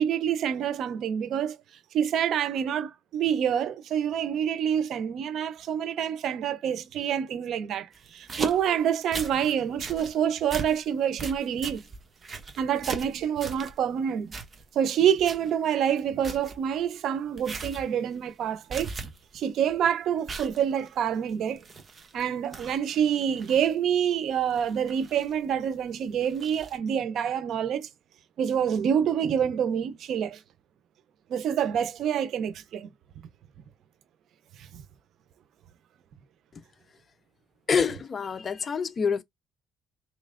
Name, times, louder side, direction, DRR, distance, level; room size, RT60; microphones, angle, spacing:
voice 1, 0.0-1.6 1.9-11.8 12.6-14.4 14.7-18.9 19.3-21.6 22.1-27.9 28.4-30.4 31.3-32.9 34.6-34.8, right 8 dB, 70° right, 0.6 m, -27 dB
sound 1, 7.9-9.5 9.8-10.1 10.5-10.8 11.2-13.8 14.3-14.8 15.2-15.5 15.8-15.9 16.2-16.6 17.4-17.9 18.2-18.4 18.7-19.4 19.7-19.8 20.3-22.2 22.5-23.7 24.5-25.5 26.2-26.8, right 4 dB, 35° right, 1.0 m, -38 dB
voice 2, 37.7-39.2, left 6 dB, 40° left, 0.5 m, -26 dB
4.0 x 3.1 x 2.4 m
cardioid pair, 80°, 0 cm